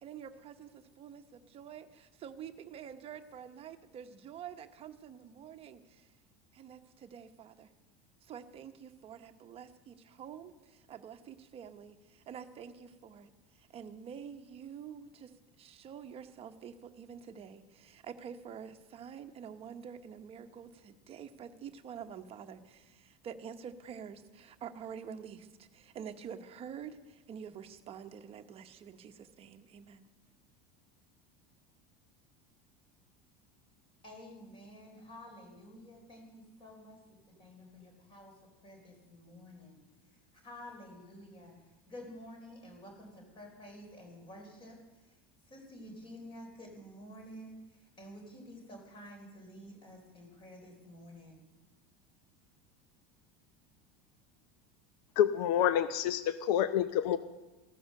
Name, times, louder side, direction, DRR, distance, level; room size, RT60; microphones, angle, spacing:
voice 1, 0.0-6.0 6.5-7.7 8.3-13.3 13.7-15.3 15.6-30.1, right 7 dB, 30° right, 8 dB, 1.0 m, -47 dB
voice 2, 34.0-37.0 37.3-38.3 38.6-39.8 40.4-41.5 41.9-44.8 45.5-47.6 48.0-51.4, equal, 25° left, 3 dB, 3.8 m, -50 dB
voice 3, 55.2-57.2, left 10 dB, 80° left, 12 dB, 0.8 m, -28 dB
15.0 x 13.5 x 6.6 m, 1.1 s
cardioid pair, 160°, 21 cm